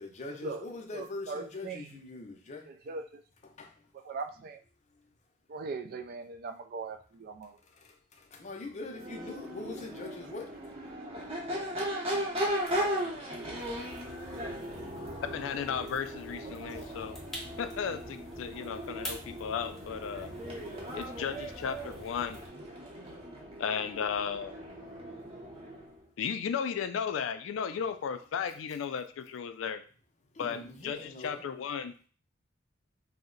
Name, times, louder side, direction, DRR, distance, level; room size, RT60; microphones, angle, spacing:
voice 1, 0.0-2.7 3.4-3.8 7.6-10.7 11.2-11.3 12.8-12.9 16.7-16.9 30.3-31.4, left 2 dB, 35° left, 2 dB, 0.5 m, -43 dB
voice 2, 0.9-2.0 2.7-3.0 4.0-4.6 5.5-7.6 10.9-11.0, right 4 dB, 50° right, 7 dB, 0.3 m, -40 dB
Crowd / Race car auto racing / Accelerating revving vroom, 8.9-26.0, equal, 30° right, 0.8 m, -38 dB
sound 1, 13.6-22.5, equal, 5° left, 0.8 m, -47 dB
voice 3, 15.2-17.2 17.6-20.3 20.9-22.4 23.6-24.5 26.2-29.8 30.4-30.6 30.8-31.9, left 7 dB, 85° left, 10 dB, 0.3 m, -35 dB
2.7 x 2.1 x 3.8 m, 0.40 s
head